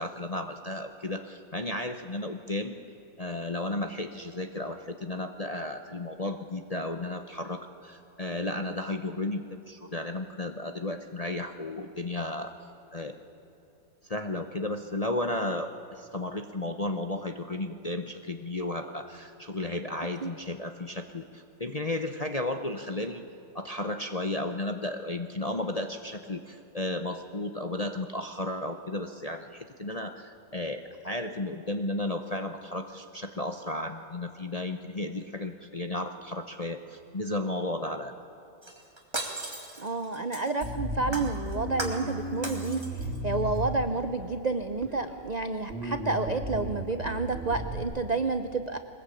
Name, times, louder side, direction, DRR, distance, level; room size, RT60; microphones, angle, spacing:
voice 1, 0.0-2.8 3.2-12.5 12.9-13.2 14.1-23.2 23.5-38.1, left 1 dB, 35° left, 6 dB, 0.6 m, -34 dB
Shatter, 38.6-40.7 41.1-42.1 42.4-43.2 43.5-43.6, right 1 dB, 15° right, 2.3 m, -37 dB
voice 2, 39.8-48.8, right 3 dB, 70° right, 8 dB, 0.4 m, -30 dB
Bass guitar, 40.6-44.2 44.8-45.4 45.7-47.8, equal, 40° right, 3.1 m, -35 dB
22.0 x 20.0 x 8.6 m, 2.9 s
omnidirectional pair, 2.0 m